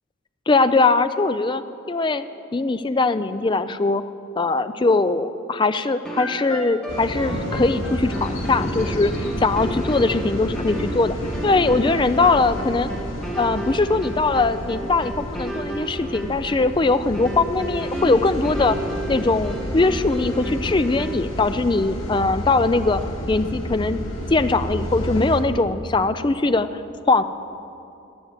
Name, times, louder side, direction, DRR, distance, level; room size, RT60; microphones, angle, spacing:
voice 1, 0.5-1.6 1.9-2.2 2.5-4.0 4.4-11.2 11.4-12.9 13.4-18.8 19.1-23.0 23.3-24.0 24.3-27.2, left 3 dB, 25° left, 11 dB, 0.4 m, -21 dB
sound 1, 6.0-21.4, right 1 dB, 5° left, 1.6 m, -33 dB
sound 2, 6.9-25.4, equal, 80° left, 1.9 m, -31 dB
Thunder, 7.3-14.1, right 2 dB, 65° right, 0.7 m, -39 dB
12.0 x 9.7 x 8.1 m, 2.7 s
head